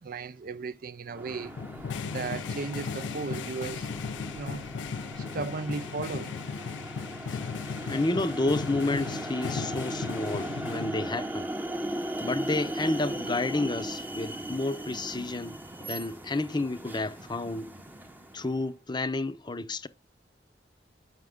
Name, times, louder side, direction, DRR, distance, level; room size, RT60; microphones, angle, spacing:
voice 1, 0.0-1.5 2.0-3.9 4.3-4.6 5.2-6.4, right 4 dB, 50° right, 0.4 m, -36 dB
sound 1, 1.1-18.6, right 1 dB, 10° right, 0.8 m, -38 dB
sound 2, 1.3-11.3, left 6 dB, 85° left, 0.4 m, -37 dB
voice 2, 7.9-11.5 12.2-17.7 18.3-19.9, left 2 dB, 25° left, 0.7 m, -30 dB
7.9 x 6.0 x 3.6 m
head